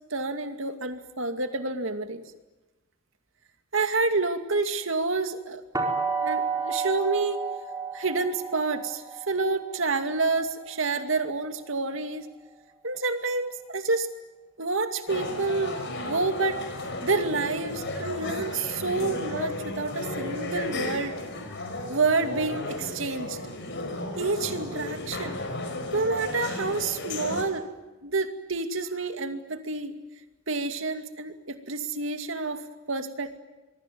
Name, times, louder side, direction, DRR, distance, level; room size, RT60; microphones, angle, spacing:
voice 1, 0.1-2.2 3.7-5.6 6.1-7.4 7.9-12.3 12.8-14.1 14.6-16.6 17.0-21.1 21.9-23.4 24.2-25.4 25.9-27.7 28.0-29.9 30.5-32.6 32.9-33.4, right 3 dB, 65° right, 7 dB, 2.4 m, -28 dB
sound 1, 5.7-11.6, right 4 dB, 15° right, 4.4 m, -32 dB
sound 2, 15.1-27.4, left 2 dB, 60° left, 5.4 m, -34 dB
26.0 x 23.0 x 9.4 m, 1.1 s
head